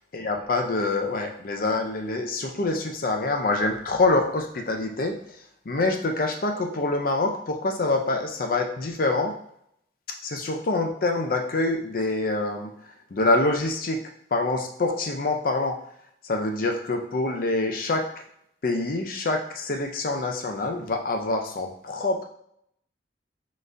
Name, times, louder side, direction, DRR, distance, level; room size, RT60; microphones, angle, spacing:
voice 1, 0.1-5.2 5.7-9.3 10.2-12.7 13.1-14.0 14.3-15.7 16.2-18.1 18.6-22.2, left 2 dB, 50° left, 3 dB, 0.5 m, -25 dB
4.0 x 3.3 x 2.5 m, 0.70 s
head